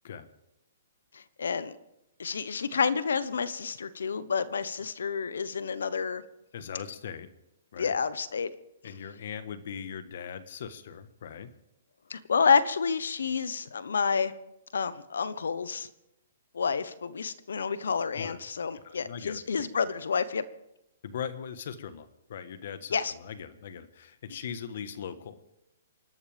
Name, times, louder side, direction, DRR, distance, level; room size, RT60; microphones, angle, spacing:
voice 1, 1.1-1.8 2.2-6.2 7.8-8.5 12.1-14.3 14.7-15.9 16.5-20.4 22.9-23.1, left 5 dB, 85° left, 15 dB, 1.1 m, -29 dB
voice 2, 6.5-7.3 7.7-7.9 8.8-11.5 18.1-18.4 18.8-19.8 21.0-25.5, left 7 dB, 55° left, 12 dB, 1.4 m, -40 dB
28.5 x 12.5 x 3.6 m, 0.87 s
hypercardioid pair, 155°, 0 cm